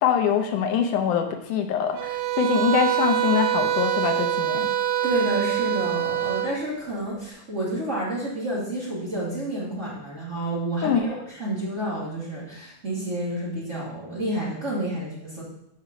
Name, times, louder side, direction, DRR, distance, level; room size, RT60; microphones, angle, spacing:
voice 1, 0.0-4.7 10.8-11.1, left 8 dB, 80° left, 6 dB, 2.3 m, -24 dB
sound 1, 2.0-6.5, right 12 dB, 75° right, 2.0 m, -25 dB
voice 2, 5.0-15.4, right 1 dB, 25° right, -7 dB, 2.4 m, -29 dB
7.0 x 5.0 x 6.6 m, 0.76 s
omnidirectional pair, 3.6 m